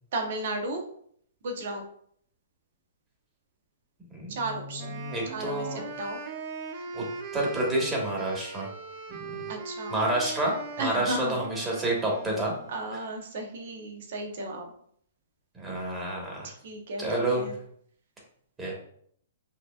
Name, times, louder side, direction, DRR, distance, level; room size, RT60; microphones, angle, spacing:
voice 1, 0.1-0.8 1.4-1.8 4.3-5.0 5.3-6.2 9.5-10.0 10.8-11.4 12.7-14.7 16.4-17.0 17.3-17.5, right 2 dB, 60° right, 3 dB, 0.9 m, -34 dB
voice 2, 4.1-5.8 6.9-7.0 7.3-8.7 9.3-9.4 9.9-10.5 10.8-12.5 12.9-13.0 15.5-16.5 17.0-17.4 18.6-18.7, right 1 dB, 15° right, -2 dB, 1.5 m, -29 dB
Wind instrument woodwind instrument, 4.8-12.9, right 4 dB, 45° right, 0.6 m, -40 dB
4.9 x 2.9 x 2.4 m, 0.65 s
hypercardioid pair, 130°, 0 cm